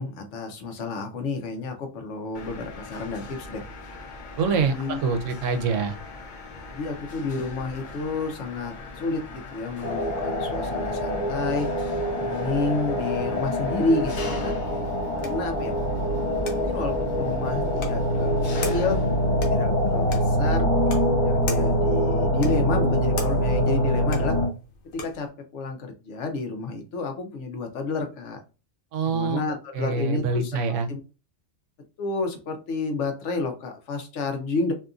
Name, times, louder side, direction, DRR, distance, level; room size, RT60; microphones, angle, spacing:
voice 1, 0.0-3.6 4.7-5.0 6.7-11.7 12.2-14.5 15.2-15.7 16.6-19.0 19.4-20.7 21.2-24.4 24.9-28.4 29.0-30.6 30.9-31.0 32.0-34.7, left 3 dB, 70° left, 5 dB, 0.9 m, -30 dB
Mechanisms, 2.3-20.4, left 2 dB, 55° left, 0.6 m, -41 dB
voice 2, 4.4-4.7 5.0-6.0 28.9-29.4 29.7-30.9, right 4 dB, 75° right, 6 dB, 0.9 m, -25 dB
sound 1, 9.8-24.5, equal, 30° left, 1.0 m, -24 dB
sound 2, 14.6-25.3, left 2 dB, 90° left, 1.1 m, -41 dB
2.7 x 2.5 x 2.3 m, 0.32 s
omnidirectional pair, 1.3 m